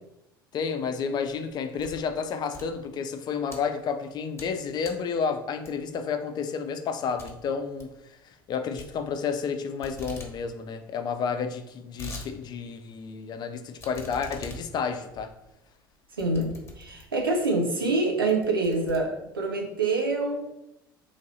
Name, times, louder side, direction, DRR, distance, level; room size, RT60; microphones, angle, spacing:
voice 1, 0.5-15.3, left 6 dB, 40° left, 8 dB, 0.5 m, -31 dB
sound 1, 1.3-2.1 2.4-3.6 4.1-4.5 4.8-5.1 5.6-6.0 6.4-6.5 6.8-6.9 7.2-7.3 7.6-7.9 8.8-9.5 9.8-10.3 10.7-10.8 10.9-11.0 11.6-12.3 12.7-12.8 13.8-17.3 17.8-18.0 18.3-19.5, left 2 dB, 25° left, 1.0 m, -43 dB
voice 2, 16.1-20.5, right 3 dB, 85° right, 1 dB, 0.7 m, -26 dB
3.2 x 2.6 x 4.0 m, 0.88 s
figure-of-eight pair, 70°, 12 cm